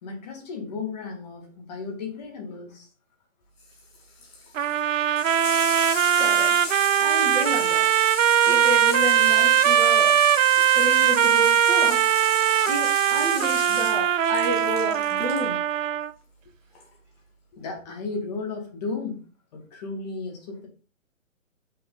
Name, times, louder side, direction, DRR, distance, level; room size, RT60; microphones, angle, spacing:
voice 1, 0.0-2.9 17.5-19.2 19.5-20.7, left 4 dB, 30° left, 1 dB, 2.1 m, -34 dB
Water tap faucet / Sink (filling or washing), 3.6-15.4 16.8-16.9, left 3 dB, 45° left, 2.2 m, -34 dB
sound 1, 4.6-16.1, right 10 dB, 70° right, 0.6 m, -21 dB
voice 2, 6.2-6.5 7.0-7.9 8.4-10.2 10.7-12.1 12.7-15.6, right 1 dB, 10° right, -5 dB, 2.3 m, -31 dB
6.1 x 4.6 x 4.0 m, 0.36 s
hypercardioid pair, 145°, 40 cm